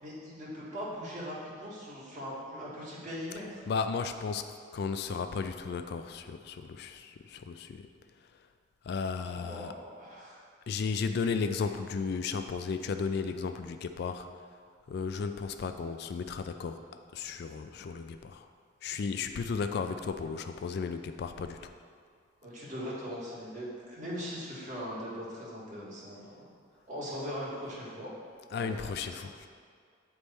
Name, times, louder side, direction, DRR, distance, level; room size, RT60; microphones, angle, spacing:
voice 1, 0.0-3.6 9.3-10.4 22.4-26.4 26.9-28.1 28.6-28.7 29.0-29.2, equal, 40° right, -6 dB, 1.7 m, -40 dB
voice 2, 3.7-4.5 4.7-7.9 8.9-9.7 10.7-14.3 14.9-16.8 17.1-18.5 18.8-21.6 28.5-29.5, left 5 dB, 55° left, 8 dB, 0.3 m, -34 dB
9.3 x 3.4 x 4.1 m, 2.1 s
head